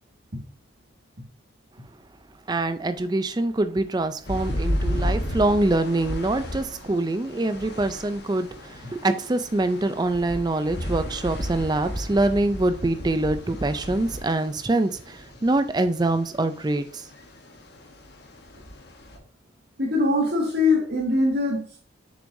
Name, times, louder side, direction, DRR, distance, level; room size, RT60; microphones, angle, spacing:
voice 1, 2.5-17.1, right 2 dB, 20° right, 0.4 m, -24 dB
sound 1, 4.3-19.2, equal, 55° left, 1.1 m, -34 dB
voice 2, 19.8-21.8, left 2 dB, 55° right, 1.9 m, -22 dB
7.0 x 6.1 x 2.7 m
head